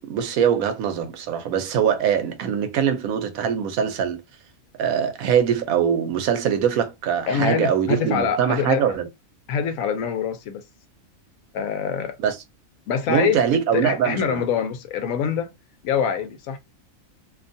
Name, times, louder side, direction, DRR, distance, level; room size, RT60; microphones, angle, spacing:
voice 1, 0.1-4.2 4.8-9.1 12.2-12.4 13.1-14.4, right 8 dB, 90° right, 1.1 m, -22 dB
voice 2, 7.3-8.9 9.5-10.6 11.5-12.1 12.9-13.4 13.7-15.5 15.8-16.6, left 7 dB, 80° left, 1.0 m, -25 dB
2.7 x 2.2 x 2.6 m
omnidirectional pair, 1.4 m